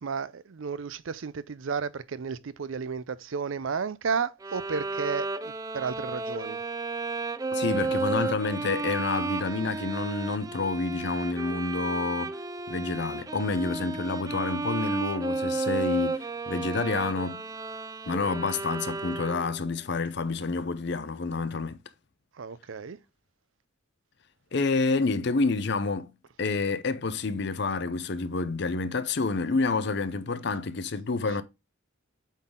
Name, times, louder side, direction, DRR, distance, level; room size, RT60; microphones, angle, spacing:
voice 1, 0.0-6.6 22.3-23.0, right 5 dB, 75° right, 0.5 m, -33 dB
Bowed string instrument, 4.4-19.7, right 3 dB, 15° right, 0.4 m, -33 dB
voice 2, 7.5-12.4 12.7-17.5 18.1-21.8 24.5-26.1 26.4-31.4, left 3 dB, 55° left, 0.6 m, -28 dB
8.2 x 4.0 x 3.7 m
head